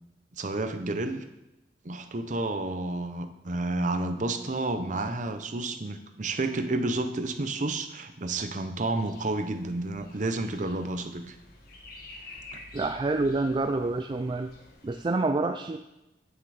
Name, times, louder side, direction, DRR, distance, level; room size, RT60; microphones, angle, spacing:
voice 1, 0.4-1.2 1.8-11.4 12.5-12.6, right 2 dB, 45° right, 8 dB, 0.8 m, -30 dB
sound 1, 8.8-15.0, left 2 dB, 55° left, 1.4 m, -49 dB
voice 2, 12.7-14.5 14.8-15.8, right 3 dB, 25° right, 7 dB, 0.3 m, -27 dB
9.3 x 6.7 x 5.0 m, 0.97 s
head